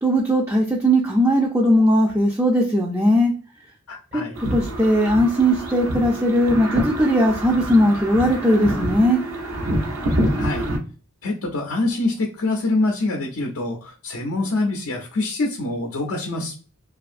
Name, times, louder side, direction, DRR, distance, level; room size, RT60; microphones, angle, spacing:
voice 1, 0.0-3.3 4.1-4.2 4.5-9.2, equal, 15° right, -1 dB, 0.3 m, -18 dB
voice 2, 3.9-4.4 10.4-10.7 11.2-16.5, left 2 dB, 70° left, 1 dB, 0.5 m, -25 dB
sound 1, 4.4-10.8, right 1 dB, 85° right, 0.6 m, -26 dB
2.5 x 2.3 x 2.4 m, 0.38 s
head